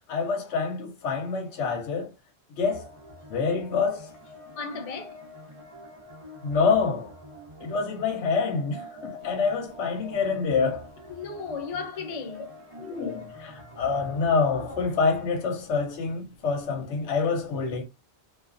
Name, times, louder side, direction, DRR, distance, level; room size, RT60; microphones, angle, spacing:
voice 1, 0.1-2.1 2.6-2.9 3.3-4.1 6.4-7.1 7.6-10.9 12.8-17.8, left 5 dB, 75° left, 0.9 m, -26 dB
sound 1, 2.6-15.3, left 1 dB, 35° right, 0.6 m, -46 dB
voice 2, 4.6-5.2 11.1-12.5, left 5 dB, 50° left, 0.4 m, -35 dB
2.4 x 2.3 x 2.4 m
omnidirectional pair, 1.2 m